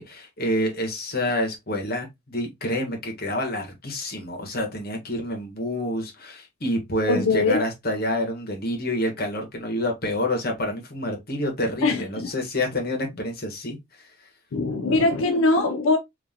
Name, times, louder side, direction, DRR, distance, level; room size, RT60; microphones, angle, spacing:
voice 1, 0.0-13.8, left 1 dB, 50° left, 1.2 m, -28 dB
voice 2, 7.1-7.6 11.8-12.3 14.5-16.0, left 3 dB, 90° left, 0.5 m, -21 dB
3.7 x 2.8 x 2.7 m
head